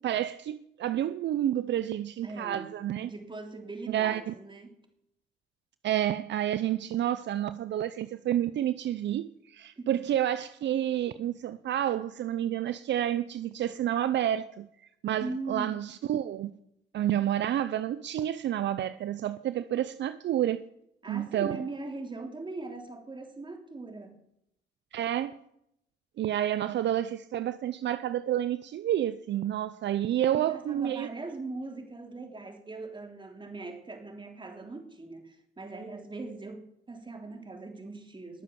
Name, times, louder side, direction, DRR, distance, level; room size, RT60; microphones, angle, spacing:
voice 1, 0.0-3.1 3.9-4.3 5.8-14.7 15.0-16.5 16.9-20.7 21.1-21.6 24.9-25.3 26.2-31.1, right 11 dB, 65° right, 0.6 m, -29 dB
voice 2, 2.2-2.7 3.0-4.8 9.8-10.0 15.2-15.7 21.0-24.2 30.3-38.4, right 3 dB, 25° right, 3.2 m, -40 dB
21.0 x 7.5 x 7.1 m
cardioid pair, 90°, 20 cm